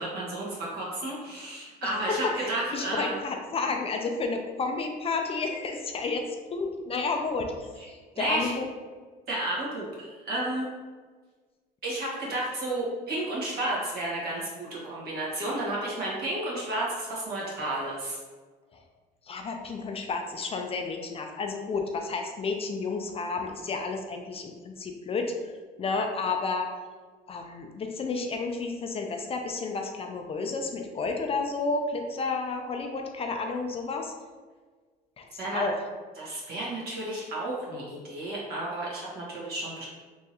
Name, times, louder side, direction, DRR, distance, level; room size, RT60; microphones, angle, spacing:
voice 1, 0.0-3.2 8.1-8.5 9.3-10.7 11.8-18.2 35.4-35.6 36.2-39.9, right 1 dB, 65° right, -5 dB, 1.4 m, -32 dB
voice 2, 1.8-8.6 18.7-18.8 19.3-25.5 25.8-26.7 27.3-34.1 35.2-35.8, left 4 dB, 35° left, 4 dB, 0.4 m, -31 dB
3.5 x 3.0 x 2.9 m, 1.4 s
cardioid pair, 110°, 17 cm